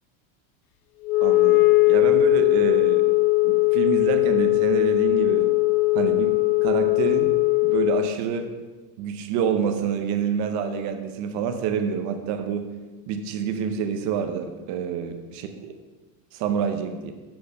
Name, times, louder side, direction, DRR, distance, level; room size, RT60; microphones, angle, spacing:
Wind instrument woodwind instrument, 1.1-8.2, left 22 dB, 70° left, 0.6 m, -20 dB
voice 1, 1.2-3.1 3.4-5.5 5.9-7.3 7.6-8.5 9.0-12.7 13.1-15.7 16.3-17.1, right 7 dB, 40° right, 7 dB, 0.7 m, -27 dB
7.6 x 4.4 x 6.6 m, 1.3 s
supercardioid pair, 165°, 44 cm